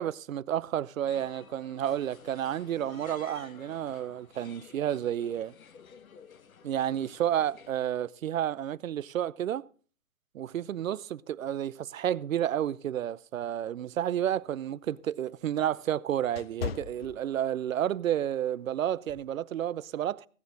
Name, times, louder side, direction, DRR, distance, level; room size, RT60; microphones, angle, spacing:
voice 1, 0.0-5.5 6.6-9.6 10.4-20.3, right 10 dB, 75° right, 0.5 m, -31 dB
sound 1, 1.0-7.7, left 6 dB, 90° left, 1.0 m, -52 dB
sound 2, 14.1-17.8 18.2-18.5 19.1-19.4, left 7 dB, 50° left, 0.5 m, -40 dB
15.5 x 9.6 x 3.8 m
hypercardioid pair, 150°, 40 cm